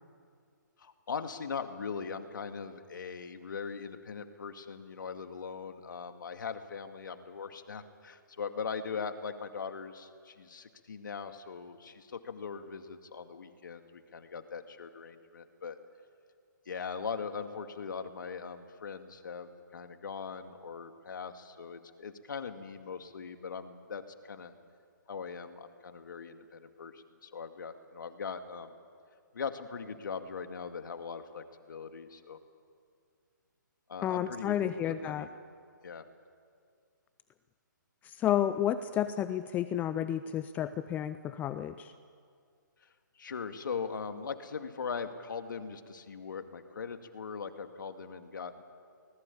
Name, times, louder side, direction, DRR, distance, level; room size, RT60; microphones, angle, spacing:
voice 1, 0.8-15.8 16.7-24.5 25.1-28.7 29.3-32.4 33.9-35.3 35.8-36.0 42.8-42.9 43.2-48.6, left 5 dB, 70° left, 7 dB, 2.2 m, -40 dB
voice 2, 34.0-35.3 38.0-41.9, left 11 dB, 15° left, 12 dB, 0.5 m, -31 dB
25.0 x 19.5 x 8.6 m, 2.2 s
hypercardioid pair, 145°, 11 cm